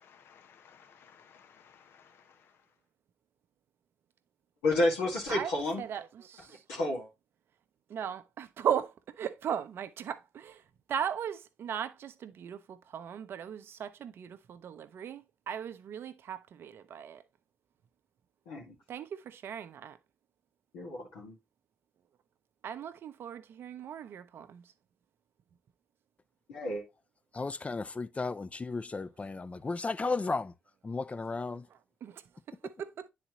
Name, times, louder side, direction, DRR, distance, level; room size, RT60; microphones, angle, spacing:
voice 1, 0.0-2.5, left 7 dB, 70° left, 0.9 m, -59 dB
voice 2, 4.6-5.8 6.7-7.1 18.5-18.7 20.7-21.4 26.5-26.8, left 2 dB, 85° left, 2.0 m, -30 dB
voice 3, 5.8-6.6 7.9-10.6 10.9-17.2 18.9-20.0 22.6-24.6 32.0-32.1 32.6-33.1, right 8 dB, 65° right, 0.7 m, -37 dB
voice 4, 27.3-30.5 30.8-31.7, left 3 dB, 30° left, 0.6 m, -34 dB
9.9 x 4.2 x 3.0 m
hypercardioid pair, 45°, 4 cm